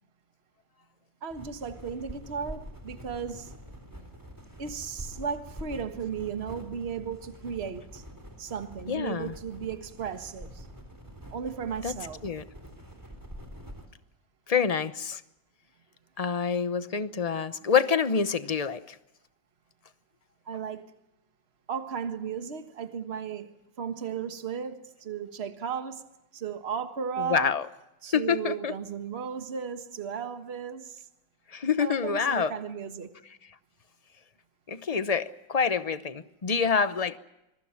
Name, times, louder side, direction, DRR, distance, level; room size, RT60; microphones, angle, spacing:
voice 1, 1.2-3.5 4.6-8.0 8.4-10.7 11.3-12.2 20.5-20.9 21.7-23.5 23.8-26.0 26.3-27.5 28.0-31.0 31.8-33.1, right 7 dB, 35° right, 1.6 m, -35 dB
sound 1, 1.3-13.9, equal, 10° right, 3.6 m, -45 dB
voice 2, 8.9-9.3 11.8-11.9 12.2-12.4 14.5-15.2 16.2-18.8 27.3-27.6 28.1-28.7 31.5-32.5 34.7-37.2, left 6 dB, 45° left, 0.5 m, -26 dB
26.0 x 23.0 x 5.8 m
omnidirectional pair, 2.0 m